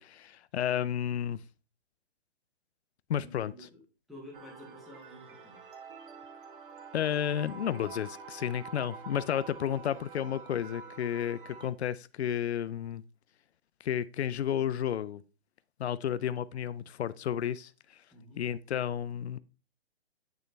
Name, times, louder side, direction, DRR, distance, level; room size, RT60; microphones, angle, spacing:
voice 1, 0.0-1.4 3.1-3.5 6.9-13.0 13.8-15.2 15.8-18.0 18.4-19.4, left 9 dB, 90° left, 0.5 m, -32 dB
voice 2, 3.1-3.8 4.1-5.6 18.1-18.4, left 1 dB, ahead, 1.1 m, -50 dB
sound 1, 4.3-11.7, right 5 dB, 55° right, 1.1 m, -47 dB
9.1 x 3.2 x 3.2 m
hypercardioid pair, 160°, 32 cm